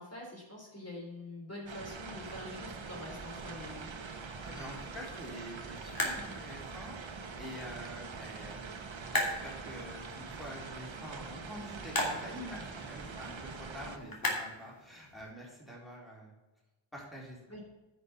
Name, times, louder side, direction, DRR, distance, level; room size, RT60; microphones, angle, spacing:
voice 1, 0.0-3.9 17.5-17.6, left 1 dB, 35° left, -3 dB, 3.3 m, -45 dB
sound 1, 1.7-14.0, right 4 dB, 85° right, 1.1 m, -44 dB
sound 2, 2.1-15.3, left 1 dB, 50° left, 2.8 m, -41 dB
voice 2, 4.4-8.7 9.1-16.3 16.9-17.4, equal, ahead, -4 dB, 3.7 m, -47 dB
9.8 x 6.4 x 5.8 m, 1.1 s
wide cardioid pair, 65°, 45 cm